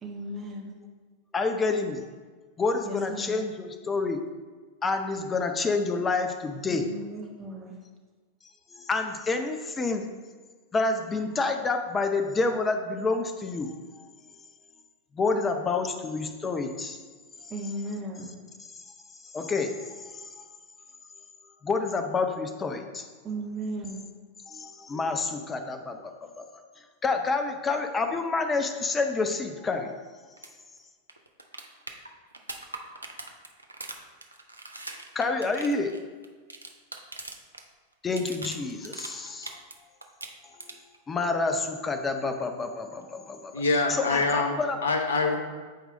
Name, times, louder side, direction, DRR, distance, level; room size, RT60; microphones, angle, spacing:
voice 1, 0.0-0.7 2.8-3.4 6.7-7.8 17.5-18.3 23.2-24.0, right 1 dB, 20° right, 0 dB, 1.2 m, -36 dB
voice 2, 1.3-2.1 2.6-4.2 4.8-6.8 8.7-10.0 10.7-13.7 15.1-17.0 19.3-20.2 21.6-23.1 24.5-26.5 27.0-29.9 35.1-35.9 38.0-39.5 41.1-43.5 43.9-44.8, left 3 dB, 20° left, 6 dB, 0.6 m, -28 dB
sound 1, 30.4-30.5 30.8-30.9 31.1-37.6 37.9-39.8 40.0-41.0 43.0-43.1, right 2 dB, 80° right, 0.6 m, -41 dB
voice 3, 43.5-45.4, left 3 dB, 65° left, 3 dB, 1.0 m, -25 dB
8.0 x 4.7 x 3.8 m, 1.4 s
figure-of-eight pair, 90°, 0 cm